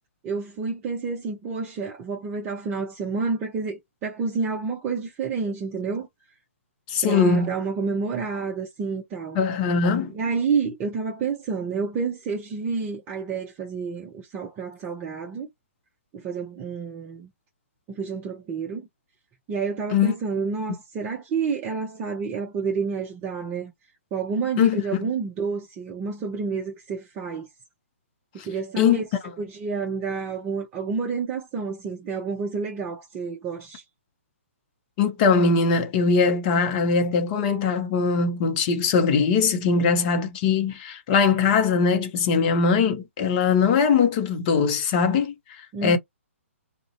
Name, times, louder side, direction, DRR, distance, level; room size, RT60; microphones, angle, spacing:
voice 1, 0.2-6.1 7.0-9.4 10.1-15.5 16.1-17.3 17.9-18.9 19.5-23.7 24.1-27.5 28.4-29.1 29.4-33.8 45.7-46.0, right 5 dB, 25° right, 0.6 m, -29 dB
voice 2, 6.9-7.5 9.4-10.1 19.9-20.1 24.6-25.1 28.4-28.5 28.8-29.0 35.0-45.3 45.8-46.0, left 5 dB, 35° left, 0.7 m, -21 dB
2.5 x 2.1 x 2.5 m
figure-of-eight pair, 130°, 7 cm